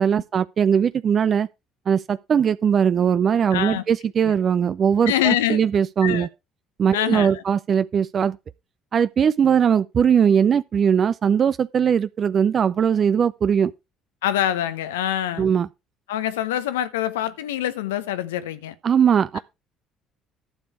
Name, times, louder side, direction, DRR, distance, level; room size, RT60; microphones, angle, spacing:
voice 1, 0.0-1.5 1.9-6.3 6.8-8.4 8.9-13.7 15.4-15.7 18.8-19.4, right 7 dB, 45° right, 0.5 m, -20 dB
voice 2, 3.5-3.8 4.2-4.3 5.1-5.6 6.0-6.3 6.9-7.4 14.2-15.5 16.1-18.7, left 12 dB, 80° left, 0.9 m, -25 dB
11.5 x 6.9 x 4.6 m
hypercardioid pair, 55°, 0 cm